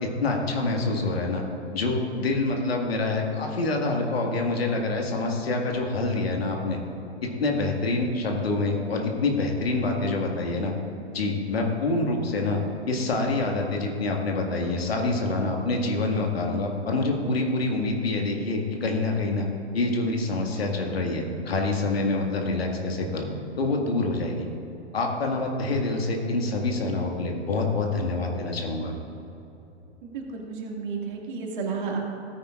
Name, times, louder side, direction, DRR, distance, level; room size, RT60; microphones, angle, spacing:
voice 1, 0.0-1.4 1.7-6.8 7.2-10.7 11.1-12.6 12.9-19.5 19.7-23.3 23.6-24.5 24.9-28.9, left 2 dB, 65° left, 1 dB, 1.8 m, -26 dB
voice 2, 30.1-32.0, right 5 dB, 50° right, 0 dB, 2.1 m, -32 dB
16.5 x 9.6 x 2.5 m, 2.9 s
figure-of-eight pair, 105°, 32 cm